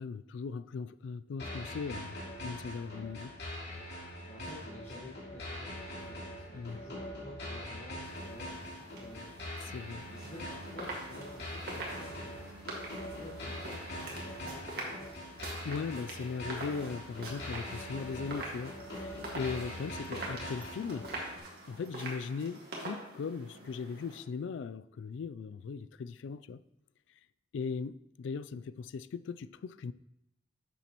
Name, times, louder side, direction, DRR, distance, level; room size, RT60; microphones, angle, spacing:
voice 1, 0.0-2.2 2.4-3.3 6.5-6.8 9.6-10.0 15.6-21.1 21.3-26.6 27.5-29.9, left 5 dB, 85° left, 0.3 m, -39 dB
sound 1, 1.4-21.4, left 1 dB, 65° left, 2.9 m, -43 dB
voice 2, 4.2-9.4 10.1-12.5 13.2-15.2, left 1 dB, 30° left, 1.5 m, -51 dB
sound 2, 8.2-24.2, right 2 dB, 55° right, 1.9 m, -45 dB
11.0 x 7.1 x 3.0 m
head